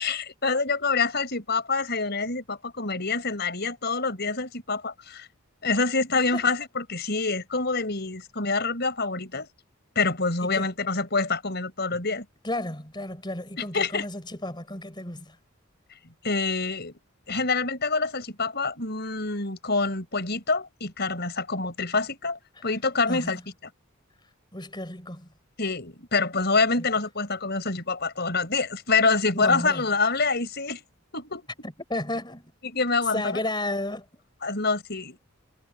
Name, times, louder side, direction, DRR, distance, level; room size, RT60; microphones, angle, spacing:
voice 1, 0.0-5.3 5.6-9.5 10.0-12.2 13.7-14.1 16.2-17.0 17.3-23.4 25.6-30.8 31.1-31.5 32.6-33.4 34.4-35.2, left 4 dB, 50° left, 5.9 m, -26 dB
voice 2, 12.4-15.4 22.6-22.7 23.1-23.4 24.5-25.3 26.8-26.9 29.3-30.1 31.6-32.5 33.0-34.2, left 1 dB, 20° left, 4.6 m, -33 dB
head